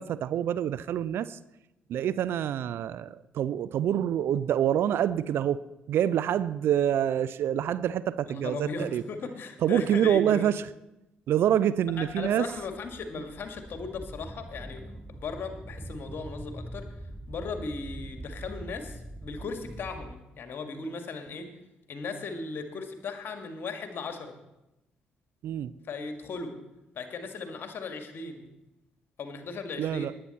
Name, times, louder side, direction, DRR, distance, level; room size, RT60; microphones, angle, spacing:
voice 1, 0.0-1.4 1.9-5.6 5.9-9.0 9.6-10.7 11.3-12.5 25.4-25.7 29.8-30.1, right 10 dB, 55° right, 16 dB, 0.4 m, -26 dB
voice 2, 8.2-10.5 12.0-16.8 17.3-21.5 21.9-24.3 25.9-26.5 27.0-28.4 29.2-30.1, left 4 dB, 50° left, 6 dB, 1.8 m, -37 dB
sound 1, 12.0-20.2, right 1 dB, 5° right, 0.9 m, -43 dB
19.0 x 8.7 x 4.2 m, 0.95 s
figure-of-eight pair, 40°, 5 cm